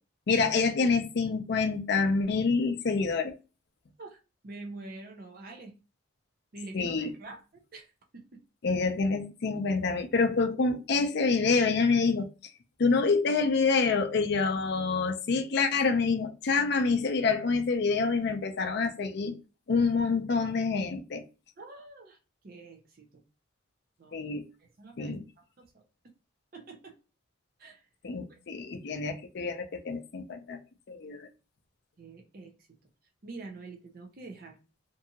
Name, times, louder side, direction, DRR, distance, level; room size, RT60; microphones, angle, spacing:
voice 1, 0.3-3.3 6.7-7.1 8.6-12.3 12.8-19.3 19.7-21.2 24.1-24.4 25.0-25.2 28.0-30.6 30.9-31.3, left 4 dB, 55° left, 0.4 m, -27 dB
voice 2, 4.0-5.8 6.5-7.9 8.1-8.4 21.6-22.2 22.4-23.2 24.0-24.2 24.6-25.8 26.5-27.0 27.6-27.9 28.3-28.4 32.0-32.8 33.2-34.6, right 3 dB, 45° right, 0.5 m, -46 dB
2.6 x 2.4 x 2.7 m
head